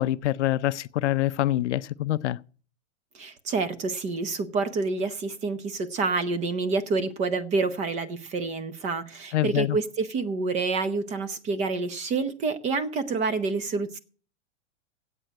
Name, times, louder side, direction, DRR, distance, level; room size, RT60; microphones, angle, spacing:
voice 1, 0.0-2.4 9.3-9.8, left 14 dB, 75° left, 0.6 m, -25 dB
voice 2, 3.1-14.0, right 4 dB, 20° right, 0.8 m, -28 dB
8.9 x 8.3 x 8.9 m
hypercardioid pair, 145°, 35 cm